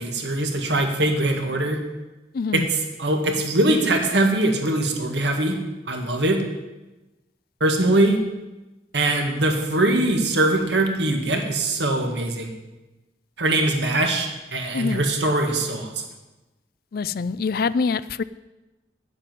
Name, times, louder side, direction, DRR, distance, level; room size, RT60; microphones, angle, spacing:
voice 1, 0.0-1.8 2.5-2.6 3.0-5.6 5.9-6.4 7.6-8.2 8.9-12.5 13.4-15.9, right 1 dB, 75° right, 4 dB, 1.9 m, -22 dB
voice 2, 2.3-2.7 14.7-15.0 16.9-18.2, left 5 dB, 55° left, 17 dB, 0.4 m, -25 dB
8.5 x 8.1 x 9.1 m, 1.1 s
head